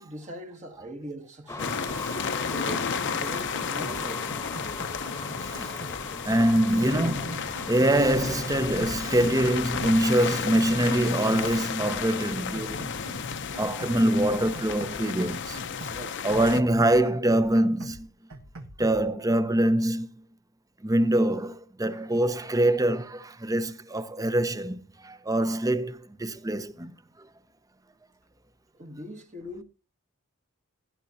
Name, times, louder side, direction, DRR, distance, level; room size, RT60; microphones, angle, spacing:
voice 1, 0.0-1.8 2.3-4.5 6.2-6.4 15.9-16.3 28.7-29.6, right 1 dB, 35° right, 1.4 m, -41 dB
sound 1, 1.5-13.3, left 2 dB, 15° left, 1.2 m, -40 dB
sound 2, 1.6-16.6, left 6 dB, 55° left, 0.8 m, -33 dB
voice 2, 2.0-2.4 5.4-5.7 6.2-12.9 13.6-15.6 16.2-18.1 18.8-20.1 20.8-26.9, right 1 dB, 15° right, 0.8 m, -24 dB
sound 3, 3.1-4.0 4.3-6.0 6.3-8.0 8.3-10.0 10.3-12.0 12.3-14.0 14.3-16.0 16.3-18.0 18.3-19.1, right 1 dB, 70° right, 1.5 m, -44 dB
16.5 x 10.5 x 2.8 m
head